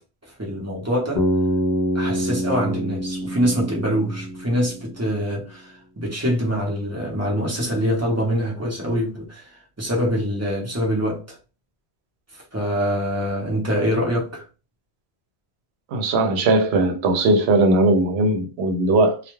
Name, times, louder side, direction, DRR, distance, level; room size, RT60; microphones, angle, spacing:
voice 1, 0.3-1.3 1.9-11.4 12.3-14.5, equal, 20° right, 0.6 m, -24 dB
Bass guitar, 1.2-5.2, equal, 45° left, 0.6 m, -26 dB
voice 2, 15.9-19.2, right 2 dB, 80° right, 0.8 m, -19 dB
2.2 x 2.2 x 3.0 m
omnidirectional pair, 1.1 m